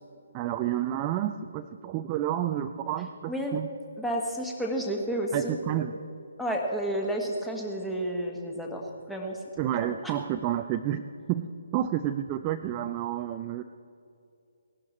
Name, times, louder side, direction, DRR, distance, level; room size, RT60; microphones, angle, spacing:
voice 1, 0.3-3.7 5.3-6.0 9.6-13.6, right 11 dB, 25° right, 8 dB, 0.4 m, -30 dB
voice 2, 4.0-5.5 6.4-9.4 9.8-10.1, right 1 dB, ahead, -1 dB, 1.5 m, -31 dB
17.5 x 11.5 x 4.3 m, 2.6 s
figure-of-eight pair, 140°, 0 cm